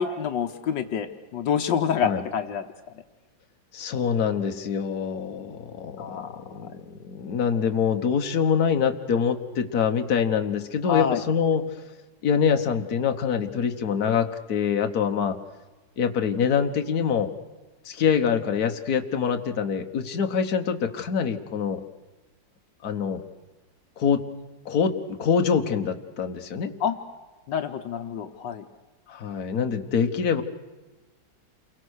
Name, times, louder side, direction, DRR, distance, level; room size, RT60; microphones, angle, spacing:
voice 1, 0.0-2.6 6.0-6.7 10.8-11.2 26.8-27.0 27.5-28.7, left 7 dB, 80° left, 7 dB, 1.7 m, -27 dB
voice 2, 3.7-11.6 12.2-15.4 16.0-17.3 17.9-21.8 22.8-23.2 24.0-24.2 24.7-26.7 29.1-30.4, left 7 dB, 55° left, 5 dB, 1.7 m, -25 dB
29.0 x 22.5 x 6.5 m, 1.2 s
omnidirectional pair, 2.0 m